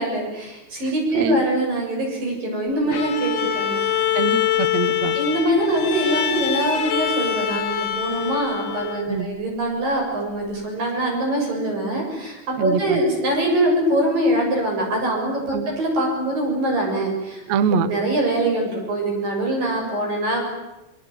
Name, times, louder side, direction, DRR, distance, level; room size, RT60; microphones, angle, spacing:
voice 1, 0.0-4.1 5.1-17.4 17.9-20.4, right 1 dB, 45° right, 0 dB, 8.8 m, -23 dB
Bowed string instrument, 2.9-9.2, left 10 dB, 60° left, 2.1 m, -24 dB
voice 2, 4.1-5.2 9.1-9.3 12.6-13.0 15.5-15.7 17.5-17.9, right 6 dB, 90° right, 13 dB, 1.5 m, -23 dB
26.0 x 22.5 x 9.4 m, 0.99 s
omnidirectional pair, 5.4 m